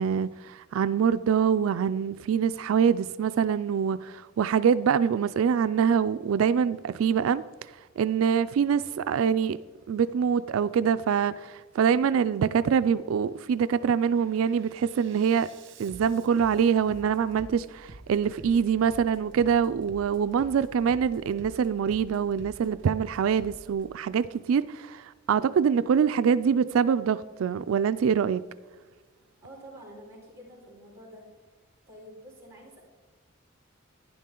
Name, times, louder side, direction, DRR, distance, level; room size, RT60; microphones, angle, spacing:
voice 1, 0.0-7.4 8.0-9.6 9.9-15.5 15.8-28.4, right 7 dB, 90° right, 0.3 m, -24 dB
Bass drum, 8.2-8.3 8.8-9.3 10.1-10.3 10.8-11.3 12.1-12.3 12.8-13.3 13.7-23.9, right 1 dB, 60° right, 1.3 m, -50 dB
voice 2, 29.4-31.3 31.9-32.8, equal, 15° right, 3.8 m, -48 dB
11.5 x 10.0 x 3.8 m
head